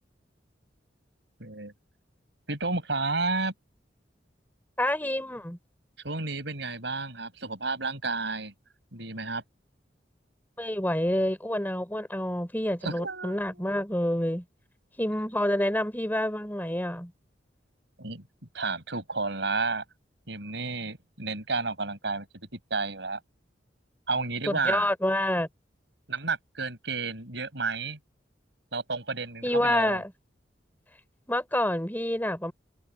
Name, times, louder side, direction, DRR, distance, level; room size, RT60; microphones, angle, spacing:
voice 1, 1.4-1.7 2.5-3.5 6.0-8.5 8.9-9.4 12.8-13.6 18.0-18.2 18.5-19.8 20.3-22.3 22.7-23.2 24.1-24.9 26.1-28.0 28.7-30.0, right 3 dB, 75° right, 5.5 m, -31 dB
voice 2, 4.8-5.6 10.6-14.5 15.0-17.1 24.5-25.5 29.4-30.1 31.3-32.5, left 1 dB, 10° left, 5.2 m, -28 dB
head